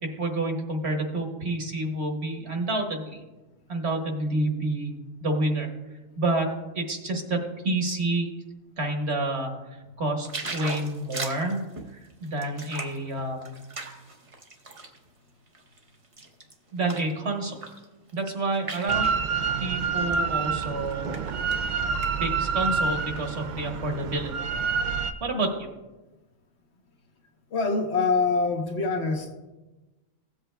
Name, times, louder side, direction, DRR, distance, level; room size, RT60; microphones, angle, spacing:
voice 1, 0.0-3.2 3.7-5.0 5.2-5.7 6.2-8.3 8.8-11.6 11.9-13.6 16.7-17.6 18.1-19.1 19.6-21.1 22.2-24.3 25.2-25.7, right 2 dB, 55° right, 3 dB, 1.4 m, -29 dB
sound 1, 10.2-15.0 15.5-17.1 17.5-17.8 18.1-19.2 20.0-20.1 20.6-21.6 21.9-22.1 22.4-23.2 23.7-23.8, right 3 dB, 30° right, 0.7 m, -38 dB
Drill, 18.9-25.1, right 5 dB, 80° right, 0.4 m, -27 dB
voice 2, 27.5-29.3, left 4 dB, 55° left, 3 dB, 1.1 m, -25 dB
16.5 x 7.9 x 2.2 m, 1.1 s
omnidirectional pair, 1.4 m